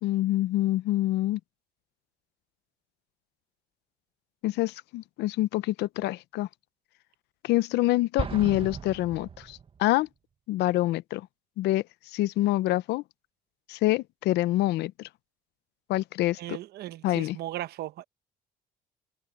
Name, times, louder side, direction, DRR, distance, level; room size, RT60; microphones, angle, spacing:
voice 1, 0.0-1.4 4.4-6.5 7.4-10.1 10.5-11.3 11.6-13.0 13.7-15.1 15.9-16.6 17.0-17.4, left 16 dB, 80° left, 0.7 m, -26 dB
Explosion, 8.2-10.0, right 6 dB, 35° right, 1.4 m, -36 dB
voice 2, 16.4-18.1, right 14 dB, 70° right, 1.0 m, -37 dB
cardioid pair, 110°, 17 cm